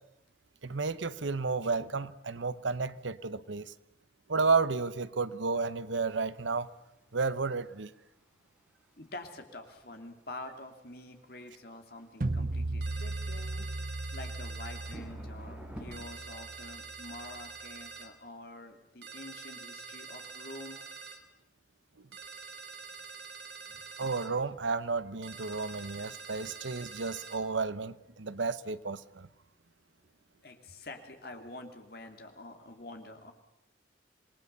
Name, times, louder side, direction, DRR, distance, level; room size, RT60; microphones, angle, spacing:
voice 1, 0.6-3.7 4.3-6.7 7.1-7.9 24.0-29.3, right 4 dB, 80° right, 16 dB, 0.9 m, -32 dB
sound 1, 6.3-15.9, equal, 5° right, 4.9 m, -52 dB
voice 2, 9.0-13.7 14.1-20.8 30.4-33.3, left 2 dB, 55° left, 5 dB, 2.8 m, -47 dB
sound 2, 12.2-17.2, right 2 dB, 45° right, 0.8 m, -37 dB
sound 3, 12.8-15.0 15.9-18.1 19.0-21.2 22.1-24.3 25.2-27.4, right 5 dB, 65° right, 3.1 m, -46 dB
27.0 x 20.0 x 6.8 m, 0.87 s
head